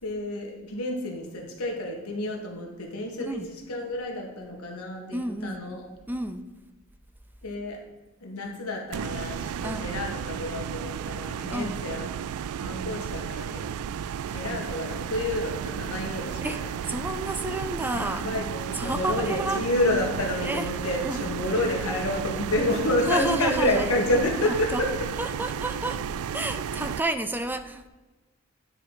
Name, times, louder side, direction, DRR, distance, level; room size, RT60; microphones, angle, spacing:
voice 1, 0.0-5.8 7.4-7.8 8.2-12.0 12.6-13.8 14.3-16.4 17.9-24.9, left 1 dB, 90° left, 0 dB, 1.7 m, -29 dB
voice 2, 5.1-5.6 6.1-6.4 9.6-10.0 11.5-11.8 16.4-16.6 16.9-18.3 18.7-19.6 20.4-20.7 21.0-21.3 21.9-22.0 23.1-23.9 24.5-24.8 25.2-26.0 26.3-27.9, right 1 dB, 10° right, 9 dB, 0.4 m, -30 dB
sound 1, 8.9-27.0, right 8 dB, 85° right, 0.3 m, -33 dB
9.6 x 4.0 x 4.8 m, 1.2 s
head